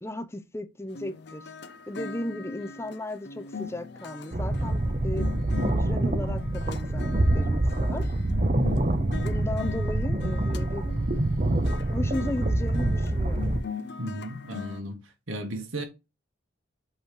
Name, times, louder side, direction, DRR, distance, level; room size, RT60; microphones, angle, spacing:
voice 1, 0.0-1.5 1.9-5.3 5.6-8.1 9.2-10.8 11.9-13.6, left 1 dB, 15° left, 0.6 m, -35 dB
sound 1, 0.9-14.8, left 6 dB, 55° left, 0.7 m, -41 dB
sound 2, 4.3-13.6, right 1 dB, 40° right, 0.7 m, -26 dB
voice 2, 14.0-15.0 15.3-15.8, right 1 dB, 85° right, 1.5 m, -34 dB
8.0 x 3.2 x 5.2 m
head